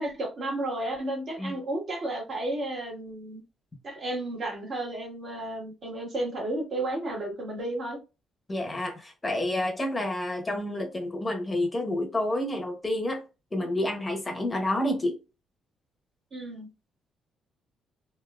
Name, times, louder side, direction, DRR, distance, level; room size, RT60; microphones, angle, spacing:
voice 1, 0.0-3.4 3.8-8.0 16.3-16.7, right 1 dB, 55° right, 2.0 m, -32 dB
voice 2, 8.5-13.2 13.5-15.2, left 1 dB, 20° left, 0.8 m, -29 dB
3.5 x 2.6 x 2.4 m
cardioid pair, 90°, 0 cm